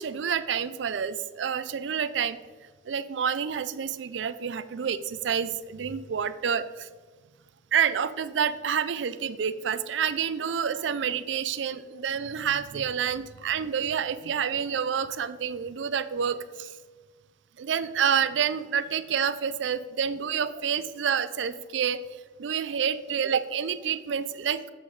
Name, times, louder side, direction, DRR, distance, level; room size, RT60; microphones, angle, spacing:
voice 1, 0.0-2.4 2.9-6.9 7.7-16.7 17.6-24.6, right 7 dB, 80° right, 14 dB, 0.4 m, -28 dB
7.5 x 5.9 x 3.9 m, 1.4 s
head